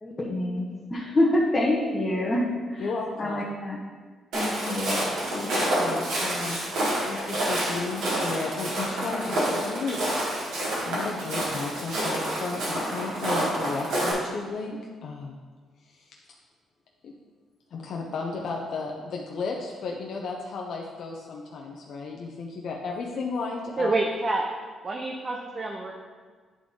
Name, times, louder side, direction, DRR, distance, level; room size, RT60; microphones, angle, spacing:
voice 1, 0.0-2.9 3.2-3.8 4.3-5.0, left 1 dB, 25° left, -5 dB, 1.1 m, -26 dB
voice 2, 2.8-3.4 5.3-6.6 7.1-10.0 10.5-15.3 15.8-16.2 17.0-17.1 17.7-23.9, left 4 dB, 65° left, -1 dB, 0.6 m, -34 dB
Walk footsteps, 4.3-14.1, right 1 dB, 85° right, 2.0 m, -28 dB
voice 3, 23.8-24.5 24.8-25.9, right 2 dB, 35° right, 1 dB, 0.6 m, -27 dB
9.6 x 3.8 x 3.7 m, 1.5 s
cardioid pair, 90°, 0 cm